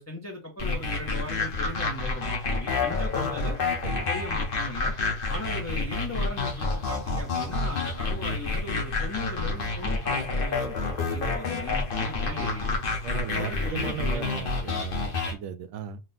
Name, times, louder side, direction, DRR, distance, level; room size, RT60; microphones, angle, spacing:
voice 1, 0.0-3.6 4.1-4.9 5.3-12.7 13.3-14.2, left 2 dB, 15° left, 0.6 m, -38 dB
sound 1, 0.6-15.3, left 3 dB, 50° left, 1.0 m, -29 dB
voice 2, 13.0-16.0, right 8 dB, 75° right, 0.9 m, -37 dB
4.1 x 2.2 x 3.8 m
omnidirectional pair, 1.3 m